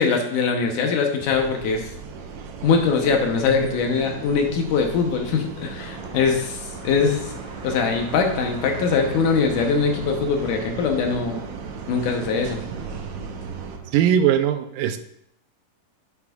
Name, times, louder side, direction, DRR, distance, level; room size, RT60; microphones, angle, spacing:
voice 1, 0.0-1.9 2.6-7.3 7.6-11.4 11.9-12.6, left 5 dB, 75° left, 3 dB, 2.4 m, -22 dB
sound 1, 1.2-13.8, right 5 dB, 70° right, 1.8 m, -36 dB
Car passing by / Traffic noise roadway noise / Engine, 5.8-13.9, right 3 dB, 55° right, 1.4 m, -40 dB
voice 2, 13.9-15.0, right 9 dB, 90° right, 9 dB, 2.3 m, -19 dB
9.6 x 7.8 x 2.4 m, 0.72 s
omnidirectional pair, 3.8 m